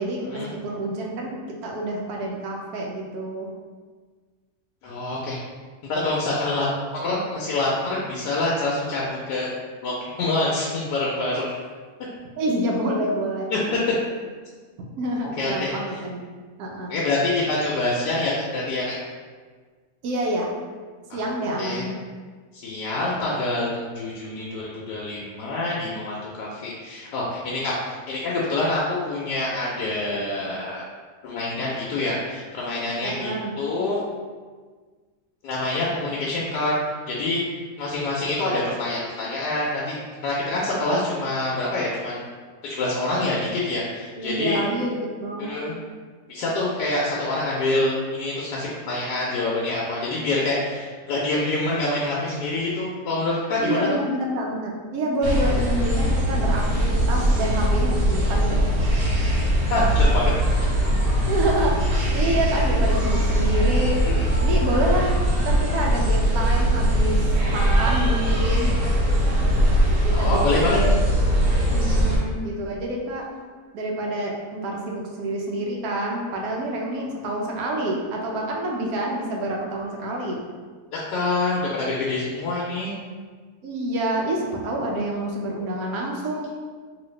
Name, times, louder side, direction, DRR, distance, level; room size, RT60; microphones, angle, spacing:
voice 1, 0.0-1.4 1.6-3.5 12.4-13.9 15.0-16.2 16.6-17.0 20.0-20.5 21.1-22.0 33.0-33.6 44.2-45.6 53.6-58.7 61.3-61.8 62.1-64.0 64.4-65.1 65.4-68.7 70.0-71.0 71.7-73.3 73.7-80.4 83.6-86.5, right 1 dB, 70° right, -1 dB, 1.0 m, -27 dB
voice 2, 4.8-5.4 5.8-6.7 7.0-9.5 9.8-11.5 13.5-13.6 15.4-15.8 16.9-19.0 21.1-21.3 21.6-21.9 22.6-30.8 31.2-34.0 35.4-36.7 37.1-37.4 37.8-42.3 42.6-44.6 45.5-45.8 46.3-53.9 59.7-60.3 64.1-64.3 70.1-70.8 80.9-82.9, left 2 dB, 80° left, -5 dB, 1.2 m, -26 dB
sound 1, 55.2-72.2, equal, 90° right, 1.6 m, -21 dB
3.0 x 2.7 x 3.2 m, 1.5 s
omnidirectional pair, 1.8 m